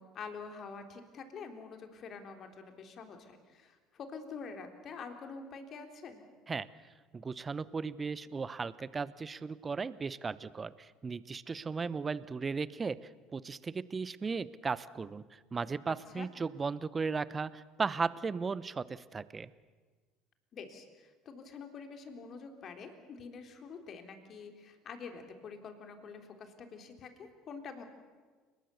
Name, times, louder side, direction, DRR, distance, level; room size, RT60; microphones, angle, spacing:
voice 1, 0.0-6.2 15.9-16.3 20.5-27.8, left 5 dB, 40° left, 6 dB, 3.5 m, -46 dB
voice 2, 7.1-19.5, right 5 dB, 25° right, 18 dB, 0.9 m, -36 dB
30.0 x 20.0 x 7.0 m, 1.4 s
figure-of-eight pair, 65°, 0 cm